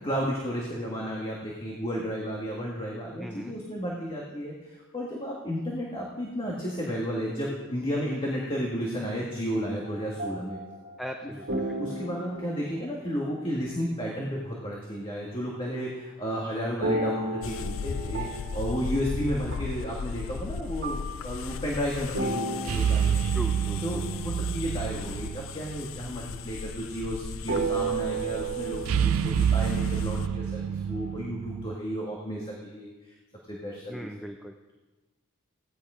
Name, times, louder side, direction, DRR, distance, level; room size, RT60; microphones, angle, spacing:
voice 1, 0.0-10.6 11.2-11.3 11.8-23.2 23.8-33.1 33.5-34.1, equal, 25° left, -3 dB, 1.8 m, -33 dB
voice 2, 3.2-3.5 11.0-12.0 23.3-24.0 33.9-34.5, equal, ahead, 4 dB, 0.6 m, -39 dB
sound 1, 9.8-13.9 16.8-20.4 20.8-24.4 24.9-25.1 27.5-28.9, right 2 dB, 55° right, 2.0 m, -34 dB
sound 2, 17.4-30.3, left 6 dB, 65° left, 0.4 m, -37 dB
sound 3, 22.7-26.0 26.2-26.3 28.8-31.7, right 8 dB, 85° right, 0.3 m, -28 dB
16.5 x 10.5 x 5.0 m, 1.2 s
head